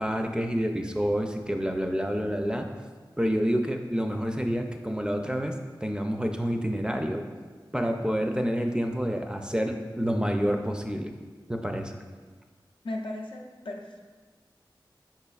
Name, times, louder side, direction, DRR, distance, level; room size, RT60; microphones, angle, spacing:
voice 1, 0.0-2.7 3.2-5.5 5.8-7.2 7.7-11.1 11.5-11.9, equal, 10° right, 4 dB, 0.4 m, -28 dB
voice 2, 12.8-14.0, left 1 dB, 85° left, 0 dB, 0.5 m, -36 dB
4.9 x 4.1 x 2.3 m, 1.4 s
wide cardioid pair, 50°, 8 cm